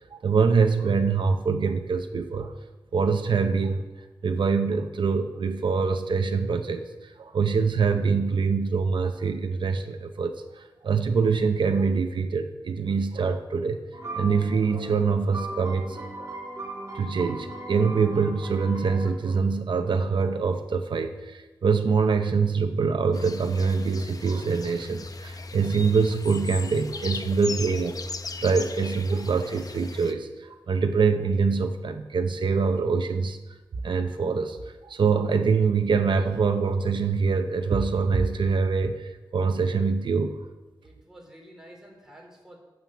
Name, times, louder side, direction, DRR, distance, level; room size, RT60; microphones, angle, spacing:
voice 1, 0.1-2.5 2.9-3.9 4.2-13.8 14.2-16.3 16.9-28.0 28.4-33.4 33.8-34.6 34.8-40.4, right 5 dB, 85° right, 6 dB, 0.8 m, -24 dB
sound 1, 13.9-19.1, right 1 dB, 40° right, 2.9 m, -38 dB
sound 2, 23.1-30.1, left 3 dB, 50° left, 0.7 m, -37 dB
voice 2, 40.8-42.6, equal, 5° right, -2 dB, 3.4 m, -49 dB
9.2 x 7.5 x 7.5 m, 1.1 s
wide cardioid pair, 85°, 8 cm